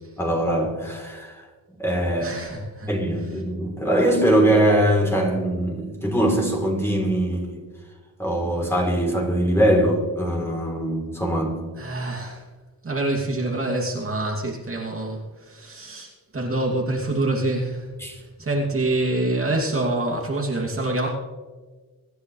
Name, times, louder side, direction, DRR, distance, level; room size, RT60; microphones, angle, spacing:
voice 1, 0.2-1.4 1.8-2.4 2.9-7.6 8.2-11.6 18.0-18.2, right 1 dB, 5° left, -1 dB, 3.5 m, -22 dB
voice 2, 2.2-2.9 11.8-12.4 12.8-17.9 18.4-21.1, right 2 dB, 35° right, -2 dB, 2.7 m, -26 dB
24.0 x 10.0 x 3.3 m, 1.4 s
cardioid pair, 110°, 36 cm